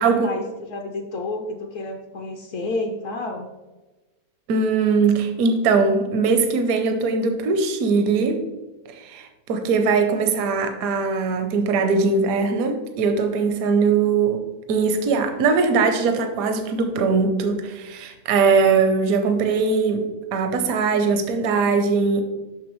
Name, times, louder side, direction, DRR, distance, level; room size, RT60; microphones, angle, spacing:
voice 1, 0.0-3.5, left 2 dB, 65° left, 3 dB, 1.0 m, -30 dB
voice 2, 4.5-8.4 8.9-14.4 14.7-22.2, right 4 dB, 75° right, 6 dB, 1.1 m, -21 dB
6.3 x 6.2 x 3.0 m, 1.1 s
omnidirectional pair, 1.6 m